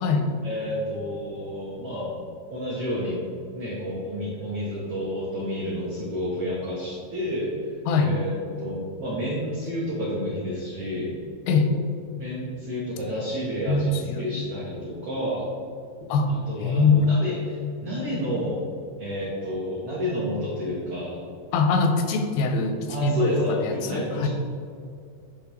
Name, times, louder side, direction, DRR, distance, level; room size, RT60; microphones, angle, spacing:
voice 1, 0.4-2.1 2.5-3.2 3.5-7.5 8.0-8.3 8.6-11.1 12.2-15.5 16.5-17.4 17.8-18.6 19.0-21.2 22.9-24.3, equal, 80° right, -7 dB, 1.3 m, -30 dB
voice 2, 7.9-8.2 11.5-11.7 13.7-14.3 16.0-16.3 16.6-17.2 21.5-24.3, left 4 dB, 90° left, 6 dB, 2.5 m, -23 dB
9.4 x 3.4 x 3.0 m, 2.3 s
omnidirectional pair, 4.3 m